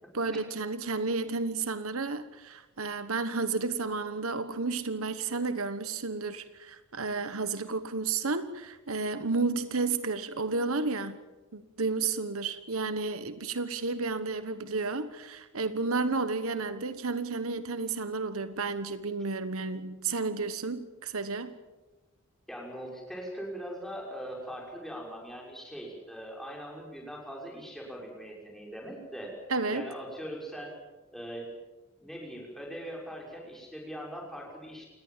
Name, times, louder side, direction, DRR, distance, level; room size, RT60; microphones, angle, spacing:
voice 1, 0.1-11.2 11.5-21.5 29.5-29.9, right 4 dB, 70° right, 12 dB, 1.2 m, -32 dB
voice 2, 22.5-29.3 29.7-30.8 31.1-31.5 32.0-34.9, equal, ahead, -2 dB, 6.2 m, -41 dB
28.5 x 19.0 x 7.5 m, 1.1 s
head